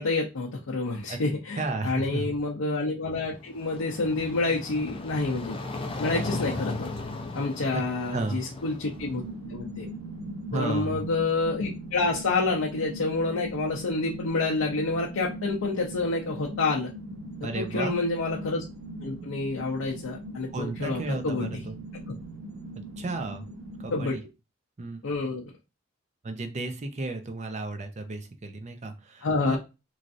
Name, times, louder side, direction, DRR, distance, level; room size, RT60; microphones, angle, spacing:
voice 1, 0.0-5.6 6.0-6.9 7.3-9.2 9.5-9.9 10.5-16.9 17.5-18.6 19.0-21.7 22.1-22.2 23.9-24.2 25.0-25.4 29.2-29.6, left 3 dB, 75° left, -2 dB, 0.5 m, -28 dB
voice 2, 1.5-2.3 7.7-7.8 8.1-8.4 10.5-11.1 17.4-17.9 20.5-21.8 22.8-23.5 23.8-24.2 24.8-25.0 26.2-29.6, right 2 dB, 35° right, 6 dB, 0.5 m, -33 dB
sound 1, 3.3-9.3, left 2 dB, 25° left, 0.4 m, -36 dB
sound 2, 8.9-24.2, right 1 dB, 80° right, 0.7 m, -40 dB
3.1 x 2.5 x 2.5 m, 0.27 s
head